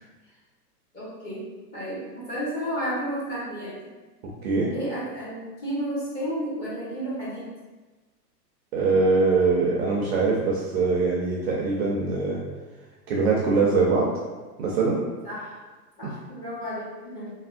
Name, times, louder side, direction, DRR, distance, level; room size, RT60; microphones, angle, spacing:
voice 1, 0.9-3.9 4.7-7.5 15.2-15.6 16.0-17.3, equal, 20° left, -9 dB, 0.8 m, -32 dB
voice 2, 4.2-4.7 8.7-12.4 13.1-14.1 14.6-15.0 16.0-16.1, right 3 dB, 45° right, -3 dB, 0.4 m, -23 dB
3.4 x 2.1 x 2.4 m, 1.3 s
hypercardioid pair, 140°, 48 cm